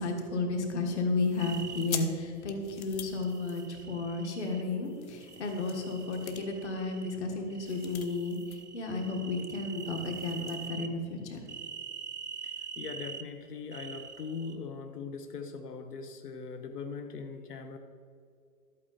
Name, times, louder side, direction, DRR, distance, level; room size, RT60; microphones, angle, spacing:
voice 1, 0.0-11.4, left 3 dB, 50° left, 3 dB, 1.7 m, -33 dB
sound 1, 1.1-4.2 4.8-8.7 9.0-9.1 9.4-10.7, left 7 dB, 65° left, 1.1 m, -45 dB
sound 2, 1.4-1.9 3.0-4.6 5.2-7.2 7.5-10.9 11.5-13.2 13.7-14.6, right 7 dB, 30° right, 0.4 m, -44 dB
voice 2, 12.4-17.8, left 5 dB, 90° left, 6 dB, 1.1 m, -41 dB
12.5 x 8.6 x 4.1 m, 2.3 s
hypercardioid pair, 175°, 45 cm